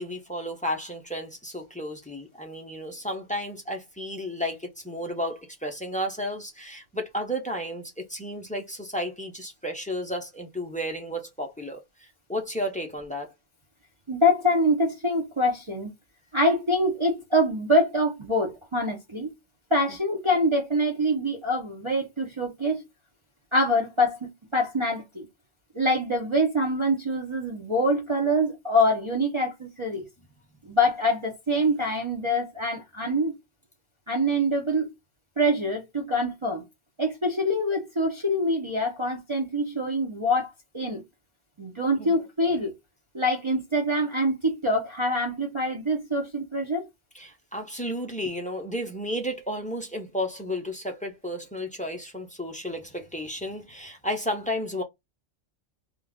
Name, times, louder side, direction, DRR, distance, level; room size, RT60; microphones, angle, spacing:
voice 1, 0.0-13.3 42.0-42.2 47.1-54.8, equal, 10° left, 0.5 m, -33 dB
voice 2, 14.1-15.9 16.3-19.3 19.7-22.8 23.5-25.3 25.7-30.0 30.6-33.3 34.1-34.9 35.4-36.6 37.0-41.0 41.6-42.7 43.1-46.9, equal, 30° right, 0.7 m, -25 dB
3.1 x 2.4 x 3.5 m
omnidirectional pair, 1.2 m